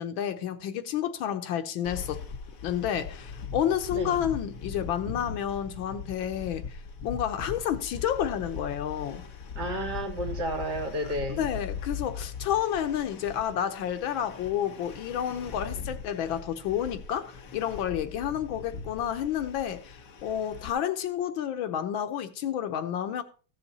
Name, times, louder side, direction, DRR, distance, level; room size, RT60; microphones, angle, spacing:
voice 1, 0.0-2.2 2.6-9.2 11.3-23.2, left 10 dB, 80° left, 1.7 m, -30 dB
sound 1, 1.8-20.7, left 6 dB, 50° left, 1.3 m, -40 dB
voice 2, 3.9-4.3 9.5-11.4 15.7-15.9, right 1 dB, 55° right, 3.0 m, -32 dB
15.0 x 6.9 x 4.2 m
omnidirectional pair, 2.2 m